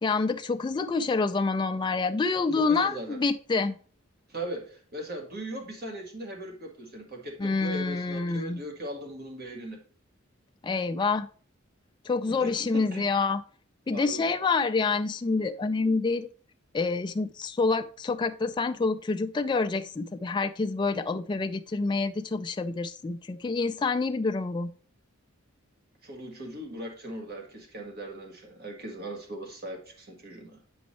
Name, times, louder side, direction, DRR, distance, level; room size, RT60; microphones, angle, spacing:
voice 1, 0.0-3.8 7.4-8.6 10.6-11.3 12.1-13.4 13.9-16.3 16.7-24.7, left 4 dB, 20° left, 0.3 m, -27 dB
voice 2, 2.5-3.2 4.3-9.8 12.4-13.1 13.9-14.2 26.0-30.6, right 1 dB, 50° right, 1.7 m, -39 dB
7.8 x 5.2 x 3.1 m
head